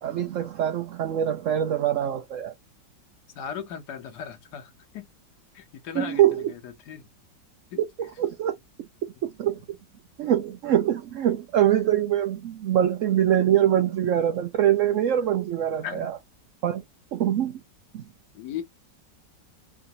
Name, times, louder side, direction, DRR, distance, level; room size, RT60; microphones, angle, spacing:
voice 1, 0.0-2.5 5.9-6.5 8.0-8.5 9.2-9.6 10.2-16.2 16.6-16.8 17.1-17.6 17.9-18.0, right 11 dB, 80° right, 0.7 m, -24 dB
voice 2, 3.4-5.1 5.5-7.0 7.7-7.8 15.8-16.1 18.3-18.6, left 8 dB, 65° left, 1.4 m, -37 dB
4.7 x 2.6 x 2.6 m
omnidirectional pair, 1.9 m